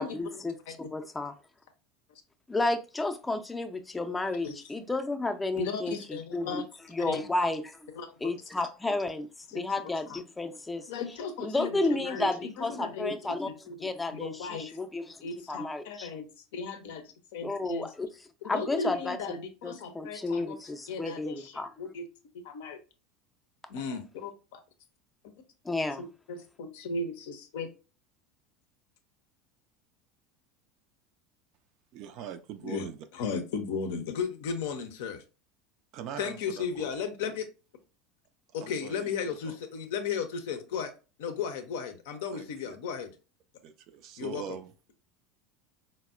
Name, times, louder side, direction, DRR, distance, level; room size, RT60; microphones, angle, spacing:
voice 1, 0.0-0.6 0.9-1.3 2.5-6.5 6.9-7.8 8.2-9.3 9.5-10.9 11.4-15.2 15.5-16.1 17.4-18.1 18.4-19.2 19.6-21.7 25.6-26.0, left 2 dB, 15° left, 0.4 m, -32 dB
voice 2, 5.6-6.6 7.1-7.2 7.9-8.3 9.5-10.2 10.9-13.4 13.7-14.8 15.2-16.3 16.5-17.9 18.4-20.6 20.9-22.1 22.3-22.8 23.7-24.6 26.0-27.7 32.6-32.9 33.1-35.2 36.2-37.5 38.5-40.9 41.2-43.1 44.2-44.4, left 5 dB, 65° left, 0.5 m, -36 dB
voice 3, 31.9-33.0 35.9-36.9 37.3-37.4 38.5-39.6 42.3-42.8 43.6-44.7, right 8 dB, 55° right, 0.4 m, -42 dB
4.0 x 2.0 x 2.3 m
hypercardioid pair, 75°, 0 cm